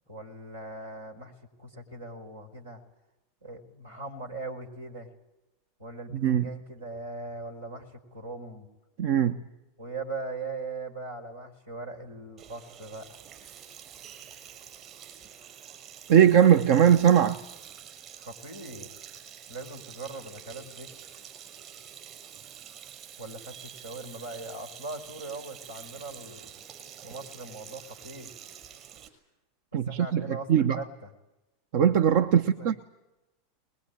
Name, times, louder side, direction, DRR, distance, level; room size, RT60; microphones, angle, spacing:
voice 1, 0.1-1.3 1.6-2.8 3.4-5.1 5.8-8.7 9.8-13.2 18.2-19.2 19.5-20.9 23.2-26.5 27.0-28.3 29.9-31.1 32.3-32.7, right 2 dB, 85° right, 4.9 m, -40 dB
voice 2, 6.1-6.5 9.0-9.4 16.1-17.4 29.7-30.8 31.7-32.8, right 9 dB, 60° right, 0.9 m, -21 dB
Sink (filling or washing), 12.4-29.1, right 9 dB, 40° right, 6.8 m, -47 dB
23.5 x 21.5 x 9.1 m
hypercardioid pair, 90°, 0 cm